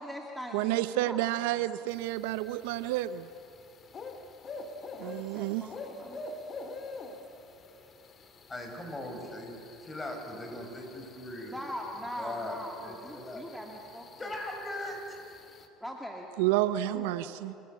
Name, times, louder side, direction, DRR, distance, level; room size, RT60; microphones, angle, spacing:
voice 1, 0.0-1.2 1.7-1.8 5.0-6.2 11.5-14.3 15.8-16.3 16.8-17.4, equal, 5° left, 0 dB, 2.5 m, -41 dB
voice 2, 0.5-3.3 5.0-5.7 16.4-17.5, right 15 dB, 75° right, 15 dB, 0.6 m, -30 dB
sound 1, 1.9-15.7, left 3 dB, 40° left, 2.3 m, -47 dB
voice 3, 8.5-11.6 12.2-13.4 14.2-15.2, left 1 dB, 20° left, 2 dB, 6.8 m, -39 dB
29.0 x 16.5 x 8.3 m, 2.8 s
hypercardioid pair, 75°, 0 cm